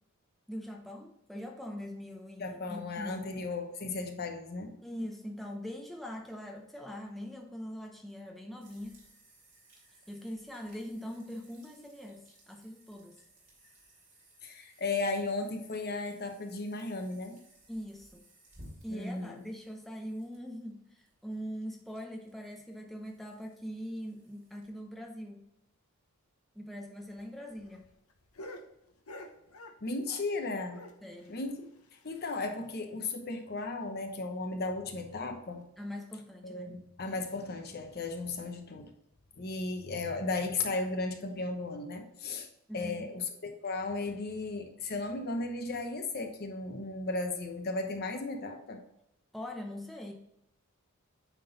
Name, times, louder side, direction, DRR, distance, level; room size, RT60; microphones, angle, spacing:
voice 1, 0.5-3.5 4.8-9.0 10.1-13.2 17.7-18.2 18.8-25.4 26.5-27.9 31.0-31.4 35.8-36.8 42.7-43.1 49.3-50.1, equal, ahead, 1 dB, 0.7 m, -42 dB
voice 2, 2.4-4.7 14.4-17.4 18.9-19.4 29.8-30.8 31.3-31.7 32.0-35.6 36.4-38.9 39.4-42.5 42.7-48.8, left 3 dB, 45° left, 5 dB, 0.9 m, -35 dB
sound 1, 8.6-24.7, right 1 dB, 40° right, 2.7 m, -60 dB
sound 2, 27.0-30.4 30.7-32.7 33.0-33.1 33.4-33.5 33.8-34.0 34.5-34.8 35.7-35.8, left 1 dB, 85° left, 0.9 m, -50 dB
9.2 x 3.8 x 4.0 m, 0.80 s
head